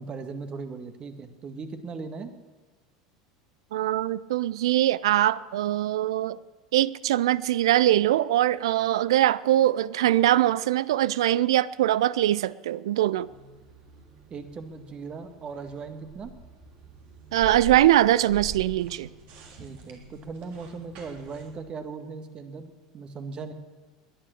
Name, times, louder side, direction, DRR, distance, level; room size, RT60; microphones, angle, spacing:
voice 1, 0.0-2.3 14.3-16.3 19.6-23.5, right 4 dB, 35° right, 8 dB, 2.0 m, -38 dB
voice 2, 3.7-6.4 6.7-13.3 17.3-19.1, right 13 dB, 70° right, 20 dB, 0.4 m, -22 dB
sound 1, 13.2-21.5, right 4 dB, 50° right, 3.4 m, -45 dB
21.0 x 10.0 x 6.5 m, 1.3 s
figure-of-eight pair, 75°, 3 cm